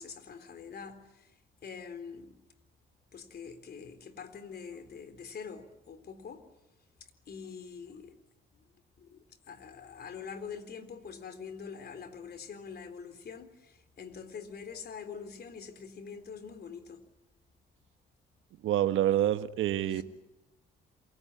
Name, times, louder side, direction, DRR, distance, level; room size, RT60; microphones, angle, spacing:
voice 1, 0.0-2.4 3.1-6.4 7.3-8.1 8.5-8.7 9.0-17.0 19.9-20.0, left 6 dB, 55° left, 3.9 m, -45 dB
voice 2, 18.6-20.0, right 12 dB, 85° right, 1.3 m, -27 dB
28.5 x 23.5 x 8.6 m
cardioid pair, 90°, 20 cm